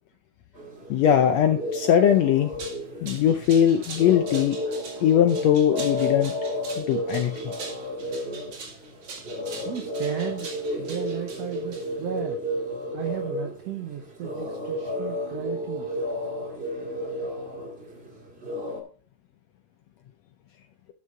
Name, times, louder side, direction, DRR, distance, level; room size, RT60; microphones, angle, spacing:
sound 1, 0.5-18.8, left 1 dB, 30° right, 1.3 m, -32 dB
voice 1, 0.9-2.5 3.0-4.6 5.0-6.3 6.8-7.5, left 9 dB, 75° left, 7 dB, 1.6 m, -20 dB
sound 2, 2.3-12.2, right 4 dB, 50° right, 2.7 m, -42 dB
voice 2, 9.7-12.4 12.9-15.9, right 9 dB, 70° right, 3 dB, 1.8 m, -34 dB
12.5 x 6.0 x 3.7 m, 0.40 s
omnidirectional pair, 3.7 m